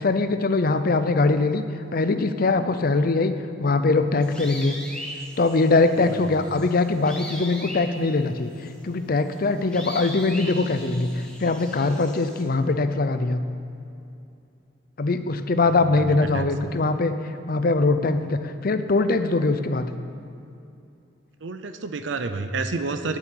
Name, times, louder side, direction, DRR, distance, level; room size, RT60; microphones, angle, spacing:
voice 1, 0.0-1.6 1.9-4.8 5.4-13.4 15.0-17.1 17.5-19.9, left 3 dB, 50° left, 10 dB, 0.6 m, -22 dB
sound 1, 4.2-12.4, equal, 5° left, 1.5 m, -40 dB
voice 2, 16.3-16.7 21.4-23.2, right 3 dB, 75° right, 9 dB, 0.6 m, -30 dB
9.0 x 7.7 x 8.6 m, 2.6 s
head